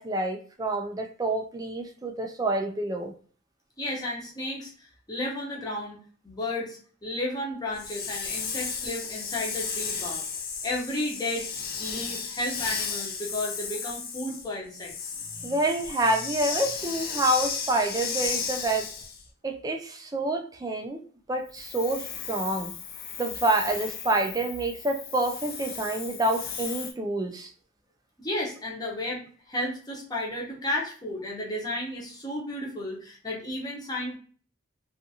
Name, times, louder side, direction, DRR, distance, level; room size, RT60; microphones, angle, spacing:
voice 1, 0.0-3.1 15.4-18.9 19.4-21.0 21.3-22.7 23.2-27.5, right 1 dB, 20° right, 5 dB, 0.3 m, -28 dB
voice 2, 3.8-6.0 6.2-10.2 10.6-11.5 11.8-15.1 28.2-34.2, left 1 dB, 20° left, -3 dB, 0.8 m, -33 dB
Hiss, 7.7-19.2 21.5-26.9, left 6 dB, 45° left, 0.5 m, -34 dB
2.5 x 2.4 x 2.7 m, 0.43 s
head